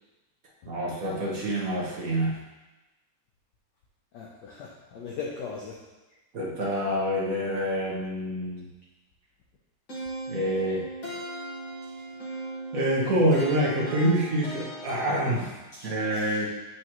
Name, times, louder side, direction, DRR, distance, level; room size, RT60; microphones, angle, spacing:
voice 1, 0.6-2.4 6.3-8.6 10.3-10.8 12.7-15.6 15.8-16.5, equal, 45° right, -4 dB, 1.4 m, -26 dB
voice 2, 4.1-5.8 15.7-16.2, left 5 dB, 65° left, -2 dB, 1.2 m, -39 dB
sound 1, 9.9-15.7, right 1 dB, 40° left, 1.7 m, -38 dB
8.2 x 4.8 x 3.0 m, 1.1 s
omnidirectional pair, 2.4 m